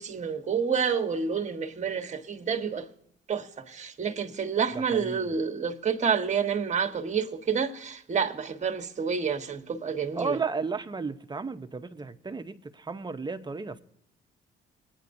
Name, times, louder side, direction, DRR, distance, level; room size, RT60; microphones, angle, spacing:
voice 1, 0.0-2.9 3.3-10.4, right 6 dB, 35° right, 1.2 m, -29 dB
voice 2, 4.7-5.4 10.1-13.8, right 4 dB, 20° right, 0.7 m, -34 dB
20.0 x 9.4 x 2.6 m
cardioid pair, 90°, 20 cm